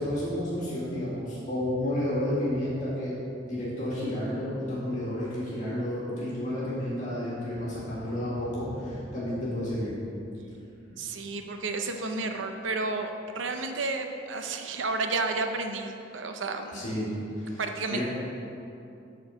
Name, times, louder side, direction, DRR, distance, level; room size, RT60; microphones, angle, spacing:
voice 1, 0.0-3.1 3.4-9.9 16.7-17.1 17.4-17.6 17.9-18.0, left 1 dB, 40° left, -8 dB, 2.0 m, -31 dB
voice 2, 11.0-16.9 17.6-18.0, right 3 dB, 80° right, 5 dB, 0.7 m, -31 dB
8.3 x 4.6 x 6.3 m, 2.7 s
head